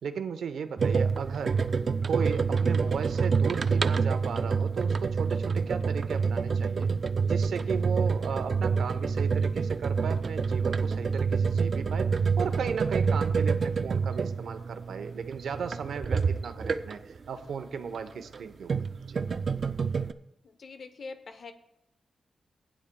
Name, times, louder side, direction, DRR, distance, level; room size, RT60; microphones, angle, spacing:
voice 1, 0.0-1.6 2.1-6.9 7.2-12.1 12.4-18.7 19.1-19.2, right 6 dB, 80° right, 8 dB, 0.9 m, -36 dB
sound 1, 0.8-17.2 18.2-20.1, right 5 dB, 45° right, 0.4 m, -27 dB
voice 2, 20.4-21.5, left 4 dB, 50° left, 9 dB, 0.8 m, -43 dB
19.0 x 9.9 x 2.3 m, 0.82 s
wide cardioid pair, 160°, 0 cm